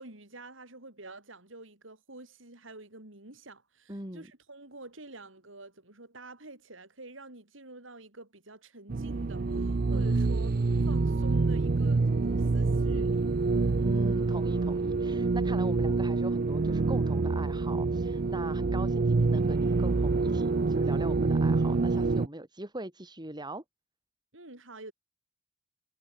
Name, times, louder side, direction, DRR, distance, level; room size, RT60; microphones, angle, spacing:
voice 1, 0.0-10.5 10.9-13.3 24.3-24.9, right 2 dB, 70° right, 4.9 m, -48 dB
voice 2, 3.9-4.3 9.9-10.3 13.8-23.6, right 1 dB, 20° right, 5.0 m, -41 dB
sound 1, 8.9-22.3, right 3 dB, 50° right, 0.5 m, -26 dB
head